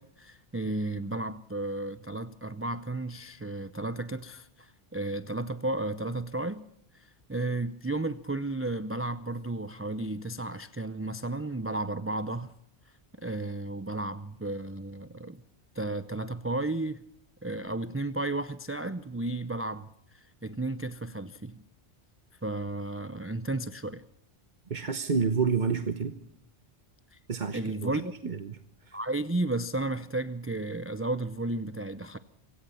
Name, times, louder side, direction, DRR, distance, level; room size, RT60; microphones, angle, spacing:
voice 1, 0.0-6.7 6.9-12.5 13.2-15.4 15.7-17.0 17.4-21.6 22.4-24.0 27.1-27.2 27.5-28.3 28.9-32.2, right 2 dB, 15° right, 0.6 m, -33 dB
voice 2, 24.7-26.1 27.3-29.0, right 5 dB, 45° right, 1.1 m, -30 dB
27.0 x 17.0 x 5.6 m
omnidirectional pair, 1.1 m